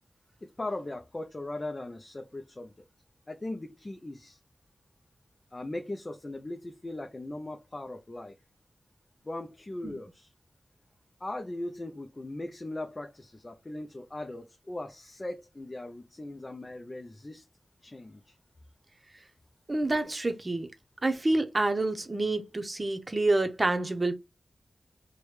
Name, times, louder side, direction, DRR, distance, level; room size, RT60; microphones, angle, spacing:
voice 1, 0.4-2.7 3.3-4.4 5.5-8.4 9.2-10.3 11.2-17.4 17.8-18.4, left 2 dB, 30° left, 0.5 m, -39 dB
voice 2, 19.7-20.7 21.0-24.1, right 2 dB, 30° right, 0.8 m, -28 dB
4.7 x 2.2 x 3.2 m
wide cardioid pair, 95°, 0 cm